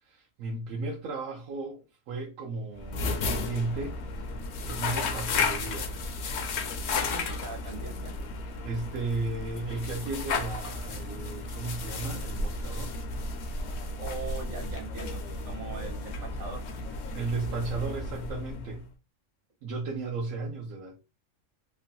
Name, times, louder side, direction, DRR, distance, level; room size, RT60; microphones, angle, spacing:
voice 1, 0.0-4.0 4.6-6.0 8.4-13.0 17.1-18.8 19.6-21.0, right 3 dB, 80° right, 1.0 m, -35 dB
sound 1, 2.8-18.9, left 3 dB, 65° left, 0.8 m, -33 dB
voice 2, 6.9-8.1 14.0-15.2 15.4-16.6, right 4 dB, 60° right, 1.4 m, -40 dB
3.1 x 2.2 x 2.6 m
omnidirectional pair, 1.4 m